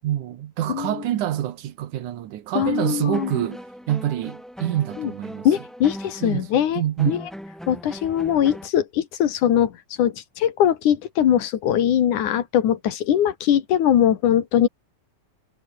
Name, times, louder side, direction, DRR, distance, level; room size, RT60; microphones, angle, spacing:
voice 1, 0.0-5.5 6.2-6.5 6.8-7.2, right 12 dB, 80° right, 2.8 m, -26 dB
voice 2, 0.7-1.0 2.5-3.4 5.0-5.1 5.4-7.2 7.7-14.7, left 10 dB, 75° left, 3.2 m, -21 dB
sound 1, 2.7-8.7, equal, ahead, 3.7 m, -39 dB
omnidirectional pair, 3.6 m